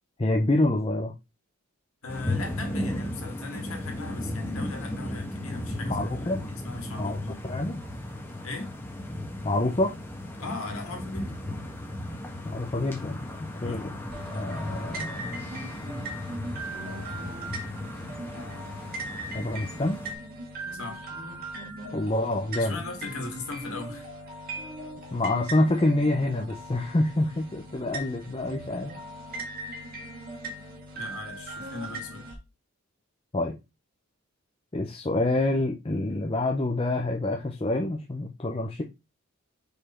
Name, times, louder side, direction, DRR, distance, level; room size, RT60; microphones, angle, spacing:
voice 1, 0.2-1.1 5.9-6.4 7.0-7.8 9.4-9.9 12.4-13.9 14.3-15.4 19.3-20.0 21.9-22.8 25.1-28.9 33.3-33.6 34.7-38.8, left 2 dB, 25° left, 0.6 m, -27 dB
voice 2, 2.0-7.4 8.4-8.7 10.4-11.4 13.6-14.0 20.7-21.1 22.6-24.1 30.9-32.4, left 3 dB, 85° left, 1.9 m, -38 dB
sound 1, 2.1-20.1, left 1 dB, 10° left, 1.3 m, -36 dB
sound 2, 14.1-32.4, right 1 dB, 45° right, 1.8 m, -39 dB
5.3 x 4.2 x 4.3 m
head